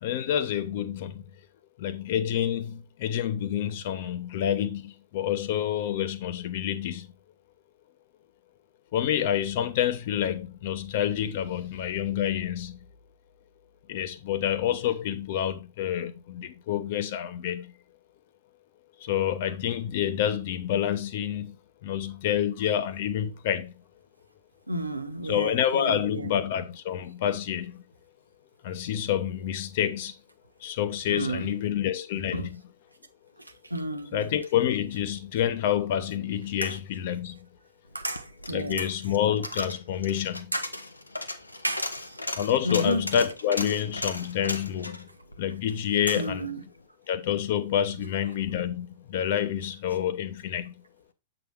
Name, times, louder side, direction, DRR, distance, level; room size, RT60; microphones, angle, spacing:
voice 1, 0.0-1.2 1.8-7.1 8.9-12.8 13.9-17.7 19.0-21.6 21.8-23.7 25.3-27.8 28.6-30.1 30.6-32.6 34.1-37.5 38.5-40.5 42.4-45.1 45.4-46.5 47.1-50.8, left 10 dB, 50° left, 1.0 m, -28 dB
voice 2, 24.7-26.3 31.1-31.5 32.3-32.5 33.7-34.3 36.6-36.7 37.9-38.9 40.5-40.7 41.6-42.2 42.6-43.1 46.1-46.6, right 1 dB, 90° right, 1.1 m, -32 dB
Coin (dropping), 37.9-46.4 46.7-46.8, left 2 dB, 85° left, 0.9 m, -36 dB
7.9 x 6.1 x 3.4 m
figure-of-eight pair, 105°, 0 cm